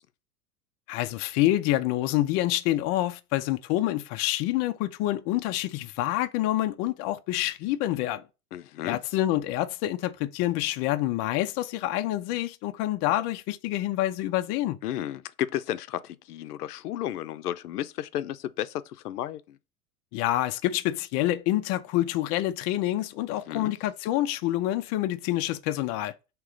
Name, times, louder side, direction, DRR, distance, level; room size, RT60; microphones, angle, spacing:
voice 1, 0.9-8.2 8.8-14.8 20.1-26.1, left 15 dB, 35° left, 0.5 m, -27 dB
voice 2, 8.5-9.0 14.8-19.6 23.5-23.7, left 12 dB, 75° left, 0.6 m, -33 dB
3.6 x 3.0 x 4.8 m
hypercardioid pair, 90°, 47 cm